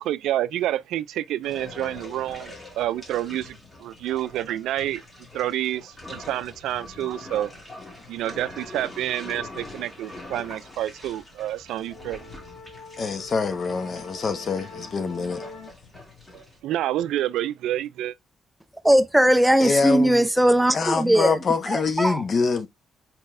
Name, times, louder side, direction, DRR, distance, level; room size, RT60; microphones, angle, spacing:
voice 1, 0.0-5.0 5.3-7.5 8.1-12.3 16.6-18.1, right 13 dB, 85° right, 0.3 m, -28 dB
sound 1, 1.4-16.6, left 2 dB, 10° left, 2.3 m, -43 dB
sound 2, 7.8-15.7, left 4 dB, 85° left, 1.7 m, -46 dB
voice 2, 13.0-15.4 19.6-20.3 20.7-22.7, left 4 dB, 45° left, 0.9 m, -25 dB
voice 3, 18.8-21.4 21.7-22.2, right 1 dB, 5° right, 0.5 m, -19 dB
4.3 x 3.9 x 2.5 m
cardioid pair, 90°, 0 cm